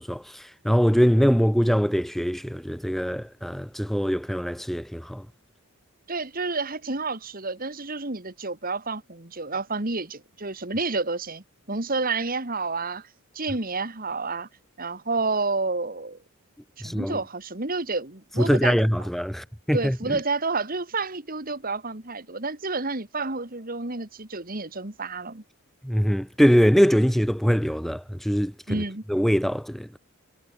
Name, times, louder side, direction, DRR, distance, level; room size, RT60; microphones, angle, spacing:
voice 1, 0.0-5.2 16.8-17.2 18.4-20.2 25.8-28.8 29.1-29.9, equal, ahead, 1.2 m, -23 dB
voice 2, 6.1-13.1 13.3-14.5 14.8-16.2 16.8-18.9 19.7-25.4 28.7-29.0, right 3 dB, 40° right, 2.3 m, -30 dB
head